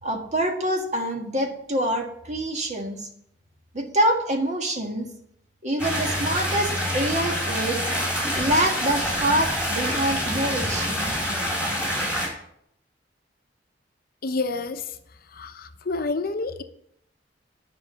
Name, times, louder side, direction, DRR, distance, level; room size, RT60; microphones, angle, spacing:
voice 1, 0.0-3.1 3.7-5.1 5.6-7.8 8.4-11.1, right 1 dB, 40° right, 3 dB, 1.7 m, -25 dB
sound 1, 5.8-12.3, equal, 5° right, 4.9 m, -26 dB
voice 2, 14.2-15.0 15.3-16.6, left 3 dB, 55° left, 9 dB, 0.8 m, -29 dB
10.5 x 6.0 x 7.7 m, 0.73 s
head